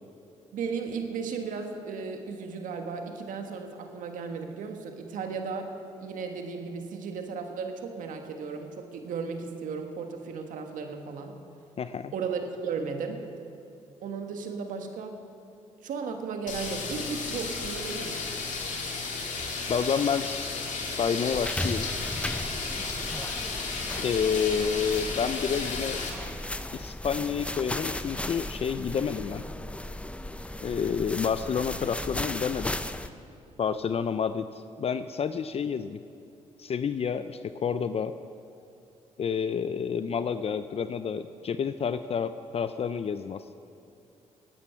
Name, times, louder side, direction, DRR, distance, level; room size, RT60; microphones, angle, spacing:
voice 1, 0.5-5.7 6.0-11.4 12.1-13.2 14.0-15.2 15.8-18.2 22.9-23.3, right 5 dB, 75° right, 5 dB, 1.6 m, -35 dB
voice 2, 11.8-12.1 19.7-21.9 24.0-26.0 26.7-29.4 30.6-32.8 33.6-34.5 34.8-36.0 36.6-38.1 39.2-43.6, left 7 dB, 50° left, 12 dB, 0.5 m, -29 dB
sound 1, 16.5-26.1, left 4 dB, 65° left, 2.5 m, -33 dB
sound 2, 21.3-33.1, left 1 dB, 10° left, 0.7 m, -36 dB
18.5 x 9.0 x 5.8 m, 2.6 s
supercardioid pair, 65°, 14 cm